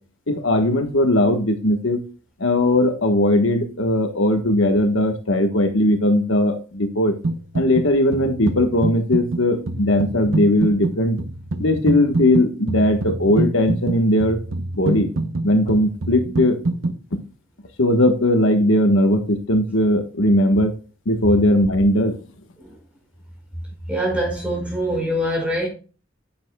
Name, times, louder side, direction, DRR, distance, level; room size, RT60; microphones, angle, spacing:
voice 1, 0.3-2.0 2.4-7.2 7.5-11.2 11.6-14.4 14.7-15.1 15.4-16.6 17.1-17.2 17.8-20.8 21.1-22.2, left 1 dB, 75° left, 1.3 m, -18 dB
sound 1, 7.2-7.9 8.1-17.0, right 2 dB, 85° right, 0.9 m, -26 dB
voice 2, 23.9-25.7, equal, 5° right, 5.3 m, -23 dB
10.0 x 8.8 x 2.3 m
head